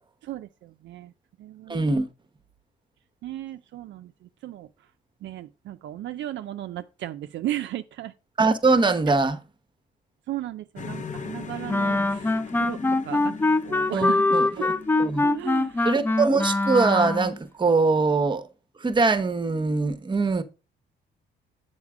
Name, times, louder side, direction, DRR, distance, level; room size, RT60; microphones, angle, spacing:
voice 1, 0.2-1.1 1.4-1.8 3.2-4.7 5.2-8.1 10.3-13.4 13.6-14.2 14.6-14.7 14.9-15.9, right 13 dB, 70° right, 0.4 m, -35 dB
voice 2, 1.7-2.1 8.4-9.4 13.9-14.7 15.0-15.3 15.8-18.5 18.8-20.4, right 3 dB, 25° right, 0.8 m, -22 dB
sound 1, 10.8-16.4, left 5 dB, 40° left, 0.7 m, -40 dB
Wind instrument woodwind instrument, 11.7-17.4, left 2 dB, 10° left, 0.4 m, -23 dB
7.2 x 4.3 x 4.8 m
cardioid pair, 90°, 20 cm